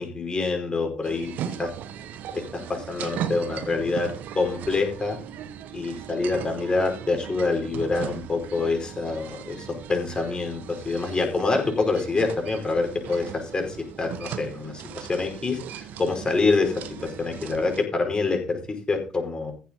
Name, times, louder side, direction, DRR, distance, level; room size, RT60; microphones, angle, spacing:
voice 1, 0.0-1.7 2.3-5.2 5.7-19.5, left 3 dB, 25° left, 3 dB, 5.0 m, -26 dB
sound 1, 1.0-17.9, right 9 dB, 55° right, 1.2 m, -38 dB
15.0 x 8.1 x 3.8 m, 0.37 s
figure-of-eight pair, 50°, 3 cm